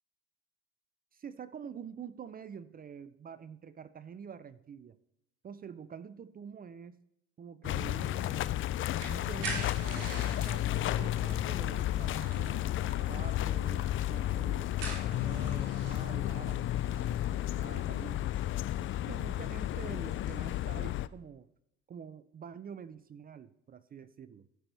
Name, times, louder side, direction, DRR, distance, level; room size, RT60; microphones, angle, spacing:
voice 1, 1.1-5.0 5.4-7.0 7.4-8.5 9.1-10.2 10.5-14.7 15.2-18.4 19.0-21.5 21.9-24.5, right 7 dB, 30° right, 15 dB, 0.5 m, -47 dB
sound 1, 7.6-21.1, left 13 dB, 45° left, 0.4 m, -32 dB
sound 2, 8.2-20.7, right 3 dB, 85° right, 3.7 m, -47 dB
sound 3, 10.7-15.3, left 1 dB, 10° left, 2.6 m, -54 dB
14.5 x 6.0 x 3.4 m, 0.81 s
supercardioid pair, 85°, 30 cm